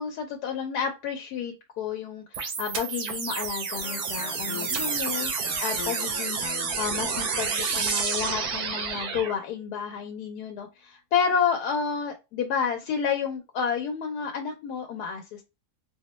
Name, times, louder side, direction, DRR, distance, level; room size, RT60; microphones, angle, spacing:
voice 1, 0.0-5.3 5.6-15.4, left 6 dB, 90° left, 3 dB, 1.1 m, -30 dB
sound 1, 2.3-9.3, right 5 dB, 90° right, 1.3 m, -29 dB
Electric guitar, 3.8-9.4, left 7 dB, 60° left, 0.9 m, -42 dB
4.1 x 2.1 x 2.9 m, 0.27 s
omnidirectional pair, 1.6 m